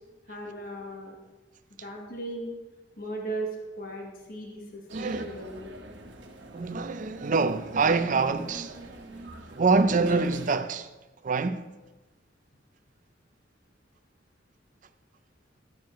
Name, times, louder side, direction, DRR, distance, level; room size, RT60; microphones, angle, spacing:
voice 1, 0.3-1.2 1.8-2.5 3.0-3.5 3.8-5.7, right 1 dB, 50° left, 1.4 m, -37 dB
voice 2, 4.9-5.3 6.5-8.8 9.5-10.9 11.2-11.7, right 4 dB, 45° right, 0.5 m, -25 dB
sound 1, 4.9-10.5, right 2 dB, 70° right, 1.3 m, -45 dB
12.5 x 9.5 x 3.1 m
head